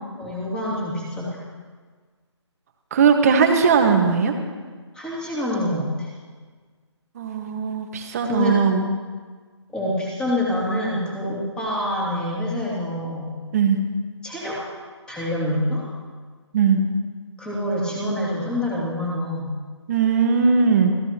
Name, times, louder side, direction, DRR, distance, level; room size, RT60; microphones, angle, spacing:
voice 1, 0.2-1.4 4.9-6.1 8.2-8.6 9.7-13.4 14.2-14.6 15.1-15.9 17.4-19.6, left 1 dB, 5° left, -6 dB, 2.9 m, -26 dB
voice 2, 2.9-4.3 7.1-8.9 13.5-13.8 16.5-16.8 19.9-20.9, right 6 dB, 30° right, 4 dB, 1.5 m, -19 dB
26.5 x 15.0 x 3.0 m, 1.5 s
hypercardioid pair, 160°, 15 cm